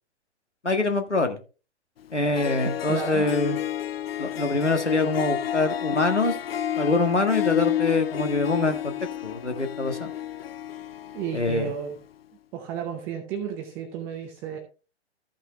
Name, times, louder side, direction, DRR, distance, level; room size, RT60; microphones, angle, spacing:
voice 1, 0.6-1.4 2.1-3.6 4.2-6.4 6.8-9.0 9.2-10.1 11.3-11.7, left 2 dB, 90° left, 5 dB, 1.7 m, -25 dB
Harp, 2.0-2.1 2.3-11.9, left 11 dB, 60° left, 0.5 m, -30 dB
voice 2, 2.9-3.3 11.1-12.0 12.5-14.6, right 8 dB, 5° right, 5 dB, 0.4 m, -32 dB
13.5 x 5.7 x 3.3 m, 0.35 s
figure-of-eight pair, 115°, 34 cm